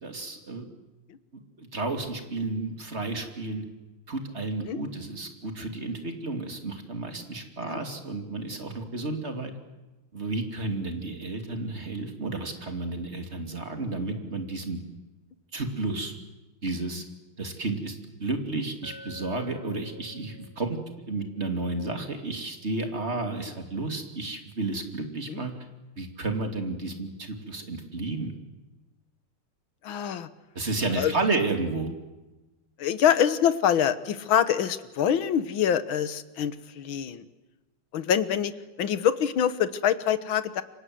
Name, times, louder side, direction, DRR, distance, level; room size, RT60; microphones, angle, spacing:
voice 1, 0.0-0.7 1.6-3.6 4.1-9.5 10.1-14.8 15.5-16.1 16.6-17.0 17.4-20.8 21.1-25.5 26.0-28.3 30.5-31.9, right 3 dB, 30° right, 5 dB, 3.0 m, -32 dB
Glass, 18.8-22.9, left 2 dB, 45° left, 4.8 m, -51 dB
voice 2, 29.8-30.3 30.9-31.1 32.8-37.2 37.9-38.5 38.8-40.6, left 9 dB, 65° left, 13 dB, 1.9 m, -25 dB
28.5 x 24.5 x 7.9 m, 1.1 s
omnidirectional pair, 2.4 m